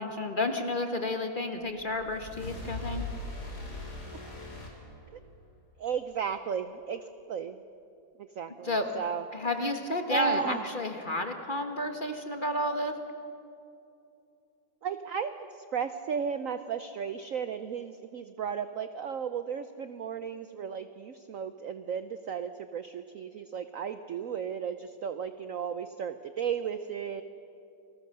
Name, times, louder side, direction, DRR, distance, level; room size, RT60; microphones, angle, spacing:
voice 1, 0.0-3.1 8.6-8.9 9.3-13.0, left 2 dB, 30° left, 5 dB, 1.4 m, -31 dB
sound 1, 1.7-5.5, left 2 dB, 55° left, 4.1 m, -40 dB
voice 2, 5.8-7.6 8.2-9.2 10.1-10.6 14.8-27.2, right 7 dB, 65° right, 10 dB, 0.8 m, -34 dB
29.0 x 19.5 x 6.6 m, 2.7 s
omnidirectional pair, 2.1 m